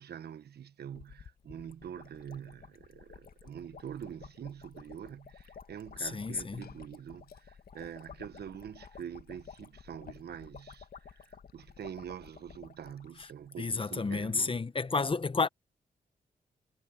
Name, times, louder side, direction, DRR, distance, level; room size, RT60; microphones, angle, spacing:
voice 1, 0.0-14.6, right 9 dB, 80° right, 1.1 m, -45 dB
sound 1, 0.9-13.7 14.0-14.1 14.3-14.5, left 6 dB, 65° left, 2.0 m, -53 dB
voice 2, 6.0-6.7 13.6-15.5, left 4 dB, 30° left, 0.9 m, -31 dB
Liquid, 6.1-13.2, left 8 dB, 80° left, 5.0 m, -63 dB
cardioid pair, 75°, 16 cm